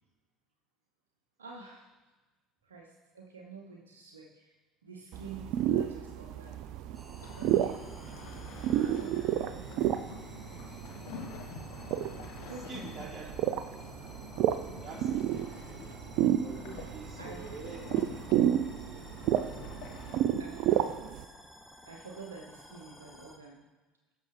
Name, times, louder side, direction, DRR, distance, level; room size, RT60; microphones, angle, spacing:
voice 1, 1.4-1.9 2.6-4.5 4.8-6.7 7.4-7.8 8.8-10.1 11.9-12.1 12.5-12.9 17.2-17.6 20.4-21.3 21.8-23.7, right 4 dB, 90° right, 0 dB, 0.9 m, -48 dB
sound 1, 5.1-21.2, right 11 dB, 60° right, 0.4 m, -31 dB
sound 2, 6.9-23.4, equal, ahead, 1.4 m, -54 dB
sound 3, 7.2-20.2, left 5 dB, 65° left, 1.2 m, -48 dB
voice 2, 7.9-8.2 12.4-14.2 14.8-15.9 16.4-18.0 18.8-19.5, right 3 dB, 35° right, -5 dB, 3.9 m, -48 dB
16.5 x 6.7 x 3.3 m, 1.2 s
hypercardioid pair, 65°, 0 cm